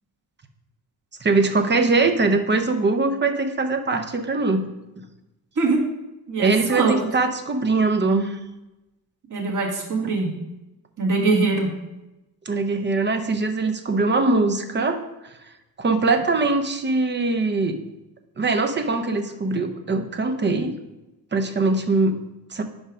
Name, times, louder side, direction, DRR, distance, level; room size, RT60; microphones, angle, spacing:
voice 1, 1.2-4.6 6.4-8.4 12.5-15.0 15.8-17.8 18.4-20.8 21.3-22.2 22.5-22.6, right 3 dB, 25° right, 7 dB, 0.7 m, -22 dB
voice 2, 6.3-7.0 9.3-10.3 11.0-11.7, right 3 dB, 45° right, -1 dB, 1.7 m, -22 dB
5.4 x 4.9 x 4.8 m, 0.97 s
supercardioid pair, 75°, 42 cm